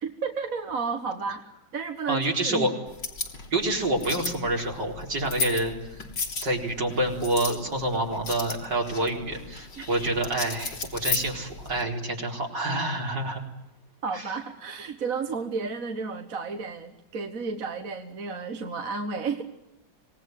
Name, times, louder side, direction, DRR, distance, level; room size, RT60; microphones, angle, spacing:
voice 1, 0.0-1.4 1.7-2.7 9.8-9.9 14.0-19.4, right 5 dB, 50° right, 5 dB, 1.9 m, -32 dB
voice 2, 2.1-2.7 3.5-5.7 6.4-13.4 14.1-14.2, right 1 dB, 70° right, 0 dB, 5.1 m, -27 dB
sound 1, 2.9-11.8, left 4 dB, 70° left, 3.6 m, -35 dB
26.0 x 19.0 x 9.3 m, 0.92 s
omnidirectional pair, 2.0 m